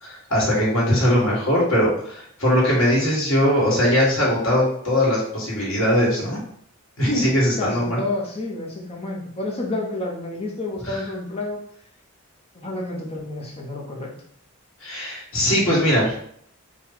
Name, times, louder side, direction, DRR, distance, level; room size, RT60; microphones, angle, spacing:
voice 1, 0.0-6.4 7.0-8.0 10.8-11.0 14.8-16.2, equal, 65° left, -4 dB, 1.9 m, -20 dB
voice 2, 7.6-11.6 12.5-14.1, left 2 dB, 30° left, -2 dB, 1.0 m, -30 dB
4.5 x 2.5 x 4.0 m, 0.64 s
head